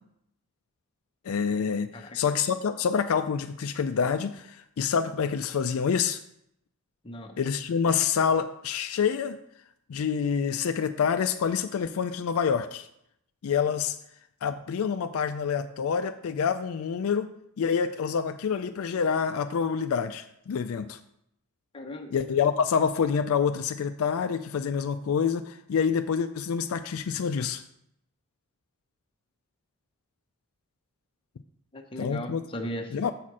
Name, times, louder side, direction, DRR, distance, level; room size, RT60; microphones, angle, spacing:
voice 1, 1.2-6.2 7.4-9.4 9.9-12.9 13.4-14.0 14.4-17.3 17.6-21.0 22.1-27.6 32.0-32.4 32.9-33.1, left 6 dB, 70° left, 9 dB, 0.4 m, -27 dB
voice 2, 7.0-7.4 21.7-22.1 31.7-33.0, left 1 dB, 25° left, 3 dB, 0.8 m, -37 dB
7.4 x 4.2 x 6.1 m, 0.75 s
head